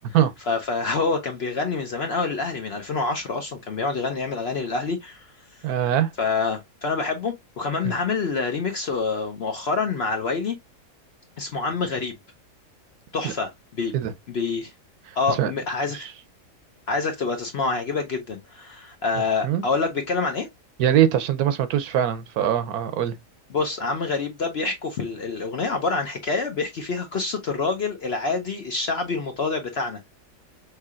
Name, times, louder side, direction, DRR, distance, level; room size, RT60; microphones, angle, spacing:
voice 1, 0.5-5.3 6.2-10.6 11.4-12.1 13.1-13.9 14.3-14.7 15.1-16.1 16.9-20.5 23.5-30.1, left 4 dB, 55° left, 0.7 m, -27 dB
voice 2, 5.6-6.1 7.8-7.9 13.2-13.3 13.9-14.1 15.3-15.5 16.0-16.1 19.4-19.6 20.8-23.1, right 10 dB, 75° right, 1.1 m, -22 dB
5.5 x 3.3 x 2.3 m
omnidirectional pair, 1.7 m